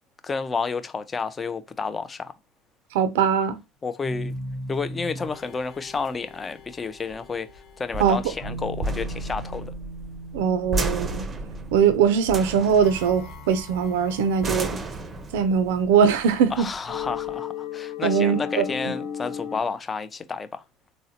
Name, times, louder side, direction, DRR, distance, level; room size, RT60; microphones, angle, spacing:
voice 1, 0.2-2.3 3.8-4.3 4.7-7.5 7.8-9.7 16.5-20.6, left 4 dB, 25° left, 0.4 m, -30 dB
voice 2, 2.9-3.6 8.0-8.2 10.3-11.2 11.7-14.7 15.3-16.7 18.0-18.7, right 7 dB, 80° right, 0.4 m, -21 dB
sound 1, 4.0-19.6, left 3 dB, 50° left, 1.1 m, -37 dB
sound 2, 4.3-17.3, right 2 dB, 25° right, 0.5 m, -34 dB
3.7 x 2.1 x 2.7 m
supercardioid pair, 95°, 0 cm